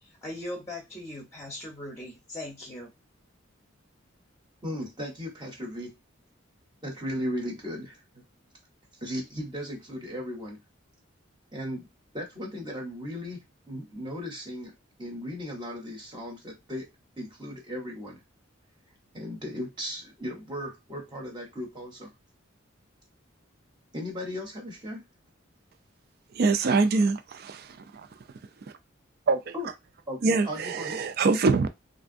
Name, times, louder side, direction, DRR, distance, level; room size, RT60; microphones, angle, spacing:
voice 1, 0.0-2.9, left 1 dB, 15° left, 0.7 m, -39 dB
voice 2, 4.6-6.0 6.8-8.2 9.0-10.6 11.5-11.9 12.1-16.9 17.2-18.2 19.1-22.1 23.9-25.1 29.5-29.7 30.1-31.0, equal, 20° right, 0.7 m, -36 dB
voice 3, 26.3-28.1 29.3-29.5 30.2-31.7, right 4 dB, 50° right, 0.4 m, -24 dB
3.2 x 2.5 x 2.5 m
head